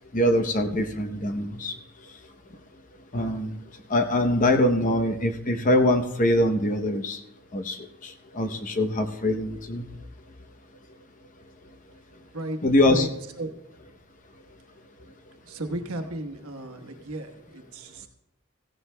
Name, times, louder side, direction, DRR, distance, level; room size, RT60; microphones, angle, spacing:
voice 1, 0.1-1.7 3.1-3.6 3.9-7.2 7.5-9.8 12.6-13.1, left 1 dB, 35° left, 7 dB, 0.7 m, -23 dB
voice 2, 15.4-18.1, right 1 dB, 80° right, 6 dB, 1.2 m, -34 dB
15.5 x 15.0 x 2.2 m, 0.85 s
head